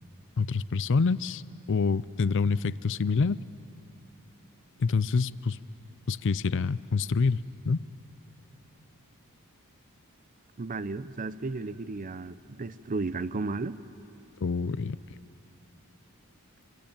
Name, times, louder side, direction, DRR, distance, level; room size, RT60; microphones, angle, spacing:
voice 1, 0.4-1.4 1.7-3.4 4.8-5.6 6.1-7.8 14.4-15.0, left 4 dB, 60° left, 18 dB, 0.5 m, -26 dB
voice 2, 10.6-13.8, right 3 dB, 40° right, 15 dB, 0.6 m, -34 dB
26.0 x 25.0 x 8.9 m, 3.0 s
head